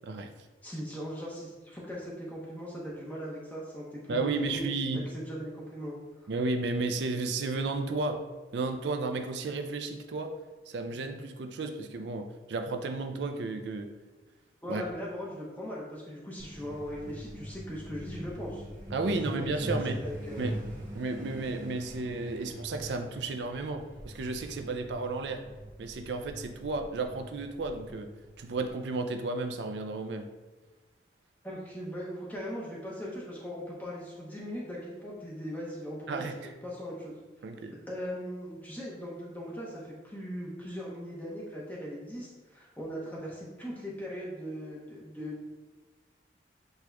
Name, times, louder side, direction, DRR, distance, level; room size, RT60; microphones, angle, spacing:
voice 1, 0.6-4.6 4.9-5.9 6.2-6.3 14.6-18.6 19.0-19.8 20.0-20.5 31.4-37.1 37.9-45.4, equal, 10° left, -5 dB, 0.8 m, -39 dB
voice 2, 4.1-5.1 6.3-8.2 8.5-10.3 10.7-13.9 14.7-14.8 18.9-20.0 20.4-20.6 20.9-25.4 25.8-28.1 28.4-30.3 36.1-36.5 37.4-37.7, right 3 dB, 75° right, 6 dB, 0.4 m, -33 dB
Truck, 16.4-28.7, equal, 50° right, 1.3 m, -42 dB
8.0 x 2.9 x 2.3 m, 1.2 s
head